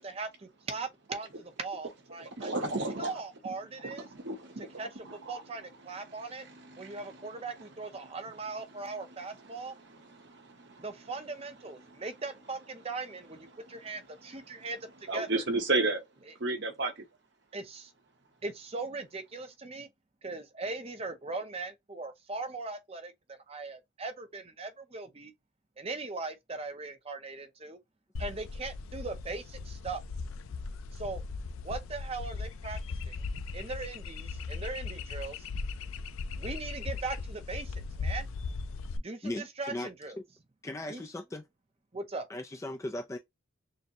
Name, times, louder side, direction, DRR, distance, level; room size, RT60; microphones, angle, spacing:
voice 1, 0.0-2.5 3.0-4.1 4.6-6.4 6.8-9.7 10.8-15.4 17.5-17.9 18.4-19.9 20.2-25.3 25.8-27.8 28.2-30.0 30.9-31.2 31.6-32.8 33.1-33.2 33.5-35.5 36.4-38.3 39.0-40.2 40.9-41.0 41.9-42.3, right 3 dB, 30° right, 0.6 m, -39 dB
voice 2, 2.2-3.1 3.8-4.8 5.0-5.4 6.6-7.0 10.1-10.8 15.1-16.0 16.4-17.0, right 2 dB, 60° right, 1.0 m, -33 dB
sound 1, 28.2-39.0, left 4 dB, 85° left, 0.4 m, -38 dB
voice 3, 39.2-39.9 40.6-41.4 42.3-43.2, left 1 dB, 15° left, 0.3 m, -37 dB
6.4 x 2.1 x 2.7 m
head